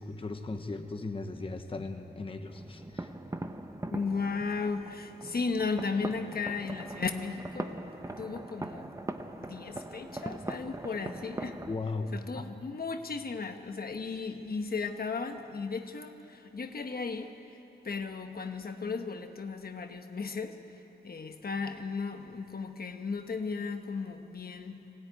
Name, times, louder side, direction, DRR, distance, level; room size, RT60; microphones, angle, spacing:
voice 1, 0.0-3.1 11.7-12.5, left 3 dB, 30° left, 5 dB, 1.0 m, -37 dB
sound 1, 2.5-11.8, right 2 dB, 20° right, 0.9 m, -41 dB
voice 2, 3.9-7.7 8.2-8.9 9.5-11.6 12.1-17.6 17.8-20.6 21.0-24.8, left 4 dB, 60° left, 6 dB, 1.2 m, -35 dB
21.0 x 17.0 x 9.5 m, 2.9 s
wide cardioid pair, 135°, 18 cm